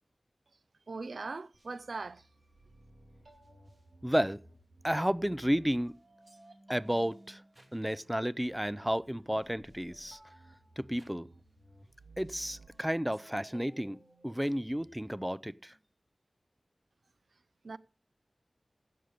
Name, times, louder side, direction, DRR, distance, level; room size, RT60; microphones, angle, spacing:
voice 1, 0.9-2.2 17.6-17.8, right 3 dB, 75° right, 0.5 m, -40 dB
sound 1, 1.5-15.2, right 2 dB, 45° right, 2.5 m, -58 dB
voice 2, 4.0-4.4 4.8-6.0 6.7-7.4 7.7-10.2 10.8-11.3 12.2-14.0 14.2-15.7, equal, 5° right, 0.4 m, -32 dB
15.5 x 6.7 x 5.1 m
wide cardioid pair, 75°, 0 cm